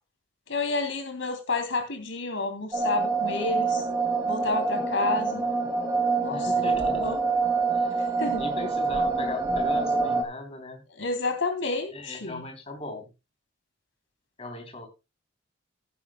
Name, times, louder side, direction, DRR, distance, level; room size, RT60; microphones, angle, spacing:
voice 1, 0.5-3.8 4.2-5.4 6.2-7.2 8.0-8.4 11.0-12.4, left 3 dB, 80° left, 6 dB, 2.9 m, -30 dB
sound 1, 2.7-10.2, right 4 dB, 15° right, 2.3 m, -26 dB
voice 2, 6.3-7.1 7.7-10.8 11.9-13.1 14.4-14.9, left 2 dB, 30° left, 4 dB, 3.5 m, -39 dB
14.5 x 11.5 x 2.3 m, 0.27 s
head